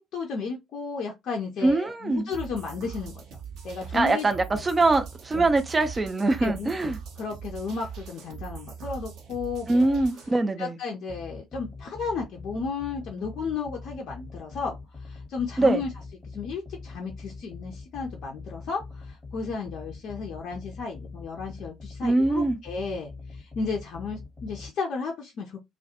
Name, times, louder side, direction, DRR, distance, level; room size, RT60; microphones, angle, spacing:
voice 1, 0.0-3.2 3.6-4.3 4.5-4.6 5.3-5.5 6.4-10.0 10.6-15.9 16.3-25.6, left 4 dB, 50° left, 0.5 m, -33 dB
voice 2, 1.6-2.3 3.9-7.0 9.7-10.8 15.6-15.8 22.0-22.6, right 2 dB, 20° right, 0.5 m, -23 dB
sound 1, 2.3-10.3, right 7 dB, 55° right, 0.7 m, -41 dB
sound 2, 11.1-24.7, left 4 dB, 20° left, 0.8 m, -43 dB
2.3 x 2.1 x 2.8 m
figure-of-eight pair, 55°, 0 cm